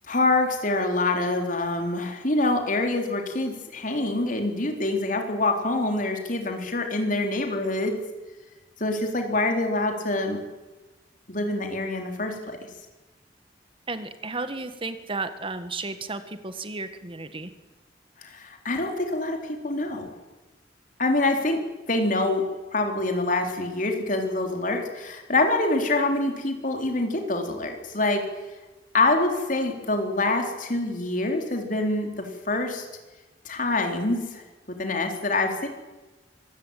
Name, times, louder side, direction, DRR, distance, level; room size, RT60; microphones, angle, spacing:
voice 1, 0.1-8.0 8.8-10.4 11.3-12.6 18.2-20.1 21.0-21.6 21.9-22.4 22.7-28.2 28.9-32.9 33.4-34.4 34.8-35.7, left 2 dB, 50° left, 4 dB, 3.9 m, -25 dB
voice 2, 13.9-17.5, right 3 dB, 30° right, 10 dB, 1.7 m, -33 dB
25.0 x 16.0 x 9.1 m, 1.2 s
head